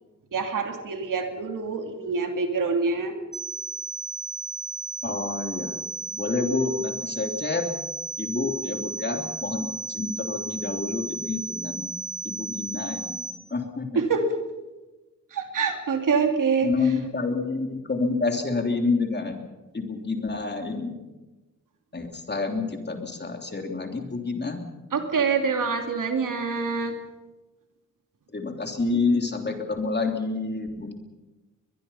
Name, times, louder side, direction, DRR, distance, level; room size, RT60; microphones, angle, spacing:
voice 1, 0.3-3.1 13.9-14.4 15.3-16.7 24.9-26.9, right 5 dB, 85° right, 5 dB, 2.8 m, -25 dB
sound 1, 3.3-13.3, right 2 dB, 10° left, 5.7 m, -35 dB
voice 2, 5.0-5.8 6.1-7.7 8.2-11.9 12.2-13.2 13.5-13.9 16.6-19.4 19.7-20.9 21.9-24.6 28.3-30.9, left 3 dB, 35° left, 4 dB, 3.3 m, -28 dB
22.5 x 22.0 x 5.7 m, 1.1 s
wide cardioid pair, 95°, 31 cm